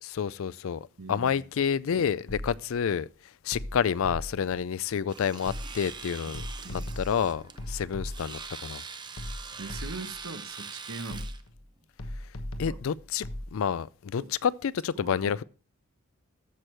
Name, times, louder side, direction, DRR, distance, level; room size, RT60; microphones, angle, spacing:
voice 1, 0.0-3.1 3.4-6.4 6.7-8.8 12.6-15.4, left 7 dB, 70° left, 0.4 m, -29 dB
voice 2, 1.0-1.4 6.6-6.9 9.6-11.3 12.6-12.8 14.2-14.3 15.0-15.3, right 3 dB, 75° right, 1.0 m, -41 dB
sound 1, 2.3-2.8 3.5-4.6 5.5-6.0 6.3-8.5 9.2-10.2 11.1-11.6 12.0-13.5, left 1 dB, 85° left, 1.2 m, -38 dB
Domestic sounds home sounds, 5.1-11.4, right 5 dB, 20° right, 0.6 m, -43 dB
14.0 x 6.2 x 3.3 m
head